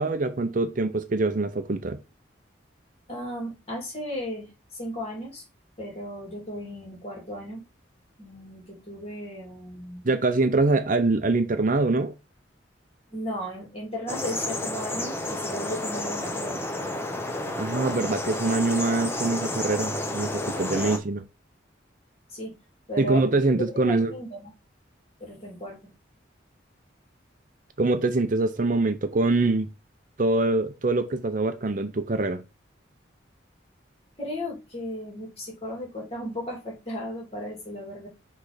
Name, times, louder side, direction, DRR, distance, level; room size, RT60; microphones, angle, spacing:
voice 1, 0.0-2.0 10.0-12.1 17.6-21.2 23.0-24.1 27.8-29.7 30.2-32.4, right 2 dB, 45° right, 0.6 m, -24 dB
voice 2, 3.1-5.4 5.8-7.6 8.2-10.1 13.1-16.7 22.3-22.6 22.9-23.2 23.9-24.5 25.2-25.9 34.2-38.1, equal, 30° left, 2.6 m, -35 dB
sound 1, 14.1-21.0, left 2 dB, 10° left, 0.7 m, -31 dB
6.2 x 3.2 x 4.9 m
head